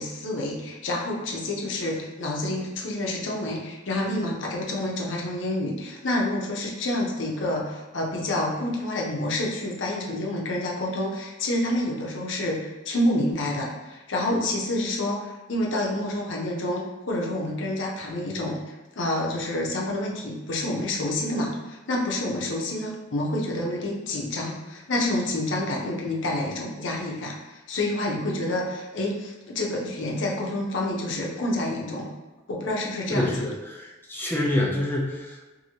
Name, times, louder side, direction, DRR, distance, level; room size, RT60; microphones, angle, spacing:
voice 1, 0.0-32.1 32.5-33.3, left 1 dB, 75° left, -1 dB, 0.6 m, -28 dB
voice 2, 33.1-35.4, left 1 dB, 10° left, -4 dB, 0.4 m, -27 dB
2.8 x 2.6 x 2.8 m, 1.1 s
head